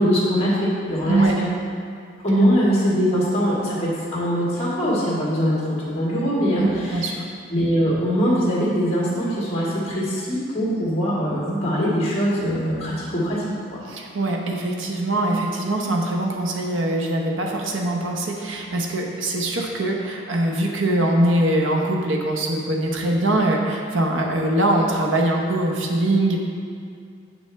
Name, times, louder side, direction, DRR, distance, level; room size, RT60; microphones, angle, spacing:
voice 1, 0.0-1.5 2.2-7.1 7.5-13.4, equal, 30° left, -7 dB, 1.9 m, -22 dB
voice 2, 6.6-7.2 13.8-26.4, right 1 dB, 80° right, 0 dB, 0.9 m, -22 dB
7.9 x 6.0 x 3.4 m, 2.3 s
head